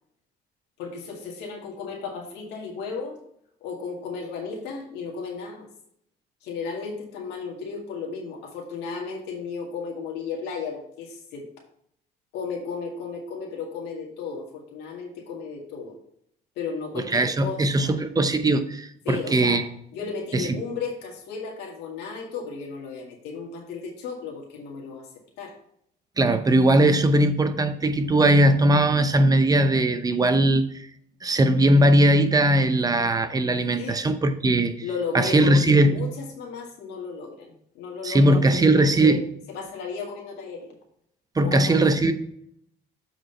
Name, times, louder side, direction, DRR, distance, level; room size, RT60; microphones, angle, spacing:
voice 1, 0.8-3.2 3.6-5.7 6.4-11.5 12.3-16.0 16.6-18.0 19.1-19.6 19.9-25.1 25.4-25.5 33.8-34.1 34.8-39.3 39.5-40.8 41.4-41.8, left 5 dB, 90° left, -1 dB, 2.0 m, -34 dB
voice 2, 17.0-19.6 20.3-20.6 26.2-30.9 31.2-34.7 35.1-36.0 38.0-39.2 41.4-42.1, right 1 dB, 20° right, 9 dB, 0.7 m, -19 dB
7.6 x 4.9 x 4.3 m, 0.68 s
cardioid pair, 110°, 17 cm